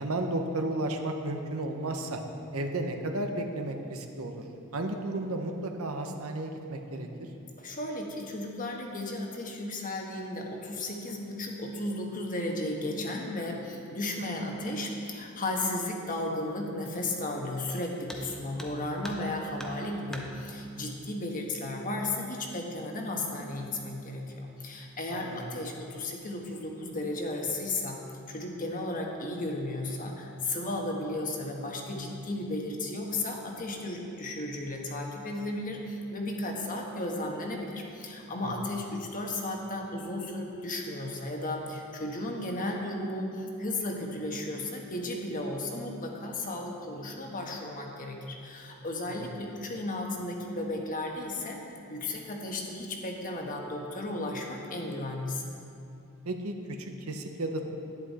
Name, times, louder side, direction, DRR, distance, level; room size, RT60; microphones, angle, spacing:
voice 1, 0.0-2.2 2.5-4.4 4.7-7.1 25.1-25.4 38.4-38.5 49.1-49.3 56.2-57.6, right 2 dB, 70° right, 4 dB, 0.9 m, -33 dB
voice 2, 7.6-28.0 28.3-51.6 51.9-55.4, left 1 dB, 40° left, 1 dB, 1.3 m, -34 dB
sound 1, 18.1-18.3 18.6-19.3 19.6-20.3 21.5-21.6 22.1-22.2 22.9-23.3 23.6-24.0, equal, ahead, 0.8 m, -43 dB
11.0 x 9.9 x 4.2 m, 2.7 s
head